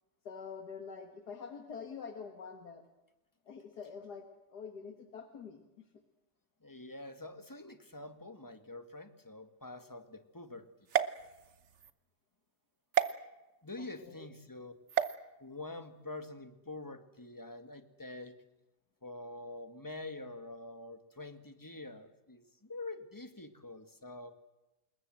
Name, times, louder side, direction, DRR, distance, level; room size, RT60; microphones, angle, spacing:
voice 1, 0.3-2.8 3.5-5.8 13.8-14.3, left 6 dB, 70° left, 6 dB, 2.3 m, -46 dB
voice 2, 6.6-10.7 13.6-14.7 15.4-18.4 19.0-24.3, left 2 dB, 10° left, 9 dB, 1.9 m, -46 dB
sound 1, 10.9-11.9 12.9-13.1 14.9-15.2, right 9 dB, 50° right, 1.2 m, -31 dB
27.0 x 21.5 x 7.8 m, 1.0 s
omnidirectional pair, 1.8 m